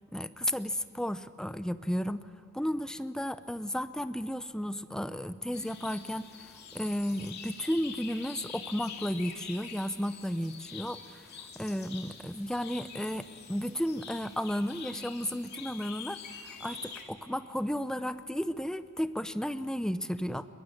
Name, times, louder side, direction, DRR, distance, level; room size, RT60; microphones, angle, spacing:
voice 1, 0.1-2.3 2.5-11.2 11.6-20.5, equal, 5° left, 12 dB, 0.7 m, -33 dB
sound 1, 5.5-17.0, left 6 dB, 55° left, 2.7 m, -46 dB
21.5 x 21.5 x 9.7 m, 2.4 s
head